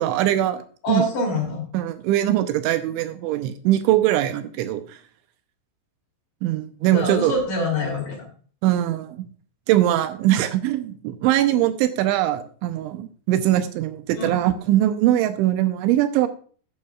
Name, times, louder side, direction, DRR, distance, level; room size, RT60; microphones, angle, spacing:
voice 1, 0.0-1.0 1.7-5.0 6.4-7.3 8.6-9.3 9.7-16.3, right 13 dB, 85° right, 9 dB, 3.1 m, -21 dB
voice 2, 0.8-1.7 6.9-8.2 14.1-14.4, left 2 dB, 50° left, 1 dB, 4.1 m, -25 dB
12.5 x 9.5 x 2.4 m, 0.43 s
omnidirectional pair, 5.5 m